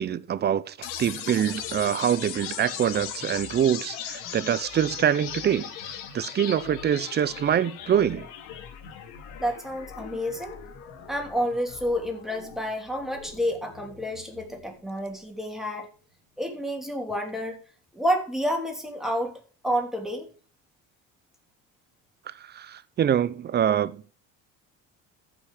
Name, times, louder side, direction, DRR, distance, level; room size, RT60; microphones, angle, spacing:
voice 1, 0.0-8.3 22.3-24.0, right 9 dB, 35° right, 0.6 m, -25 dB
sound 1, 0.8-14.8, left 8 dB, 85° left, 2.5 m, -39 dB
voice 2, 9.4-10.6 11.1-15.9 16.4-17.6 17.9-19.3 19.6-20.2, equal, ahead, 3.1 m, -29 dB
14.0 x 6.1 x 5.0 m
cardioid pair, 125°, 31 cm